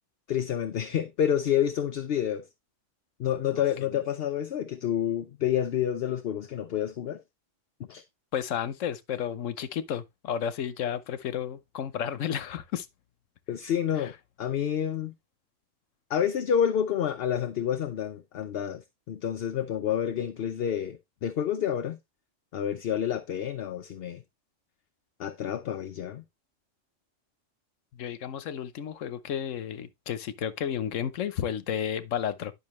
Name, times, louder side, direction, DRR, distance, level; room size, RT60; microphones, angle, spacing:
voice 1, 0.3-2.5 3.2-7.2 7.8-8.0 13.5-14.1 14.4-15.1 16.1-22.0 22.5-24.2 25.2-26.2, left 9 dB, 60° left, 0.8 m, -29 dB
voice 2, 3.5-4.0 8.3-12.9 14.0-14.1 27.9-32.5, left 9 dB, 90° left, 1.2 m, -32 dB
10.5 x 5.9 x 3.1 m
omnidirectional pair, 1.3 m